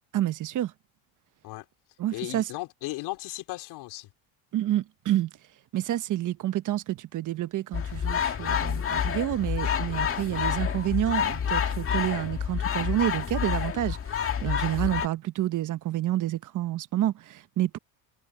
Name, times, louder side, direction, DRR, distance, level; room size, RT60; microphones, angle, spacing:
voice 1, 0.1-0.7 2.0-2.4 4.5-5.3 5.7-17.8, right 13 dB, 50° right, 1.2 m, -29 dB
voice 2, 2.1-4.1 14.7-14.9, left 19 dB, 70° left, 4.4 m, -36 dB
sound 1, 7.7-15.1, left 8 dB, 30° left, 2.2 m, -28 dB
cardioid pair, 120°, 40 cm